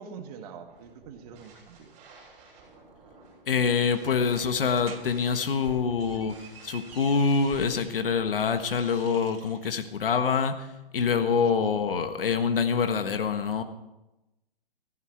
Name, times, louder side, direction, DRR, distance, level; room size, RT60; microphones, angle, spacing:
voice 1, 0.0-1.9 11.6-11.8, right 6 dB, 40° right, 6 dB, 1.9 m, -44 dB
sound 1, 0.6-9.2, right 3 dB, 25° right, 6.8 m, -51 dB
voice 2, 3.5-6.3 6.6-10.7 10.9-13.6, left 5 dB, 70° left, 9 dB, 1.5 m, -25 dB
sound 2, 4.7-5.1 5.8-8.0 8.4-9.7, right 5 dB, 80° right, 2.3 m, -48 dB
17.0 x 14.5 x 4.7 m, 0.98 s
hypercardioid pair, 130°, 29 cm